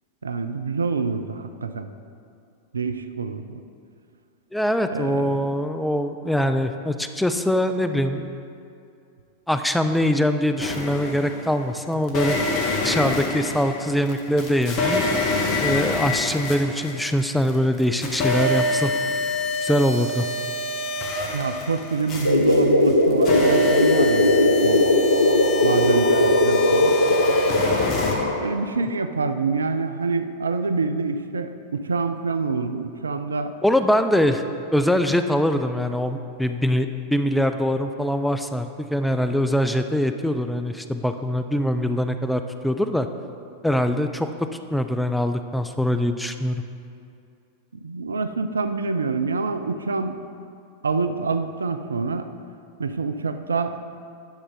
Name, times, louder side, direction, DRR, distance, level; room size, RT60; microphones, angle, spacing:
voice 1, 0.2-1.9 2.7-3.6 4.9-5.5 21.3-24.9 25.6-27.0 28.4-33.5 47.7-50.2 50.8-52.3 52.8-53.8, right 4 dB, 75° right, 9 dB, 0.4 m, -26 dB
voice 2, 4.5-8.3 9.5-12.4 12.8-15.0 15.6-18.9 19.6-20.3 33.6-34.4 34.7-43.1 43.6-44.3 44.7-46.6, equal, 5° left, 8 dB, 0.4 m, -23 dB
sound 1, 10.6-11.5 12.1-17.5 17.8-28.1, left 2 dB, 35° left, 1.2 m, -26 dB
sound 2, 22.2-28.4, left 1 dB, 80° left, 0.7 m, -19 dB
10.5 x 6.4 x 3.7 m, 2.5 s
figure-of-eight pair, 90°, 0 cm